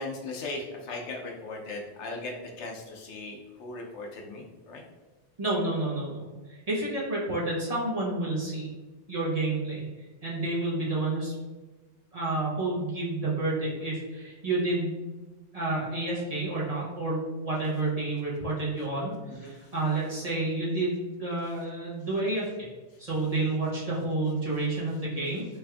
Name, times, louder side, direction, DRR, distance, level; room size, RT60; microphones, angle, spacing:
voice 1, 0.0-4.8 19.3-19.7 22.9-23.0, left 2 dB, 75° left, 1 dB, 1.0 m, -38 dB
voice 2, 5.4-8.7 9.1-9.9 10.2-11.4 12.1-15.2 15.5-22.7 23.0-25.6, right 2 dB, 35° right, -7 dB, 0.9 m, -30 dB
3.3 x 2.6 x 3.3 m, 1.2 s
omnidirectional pair, 1.2 m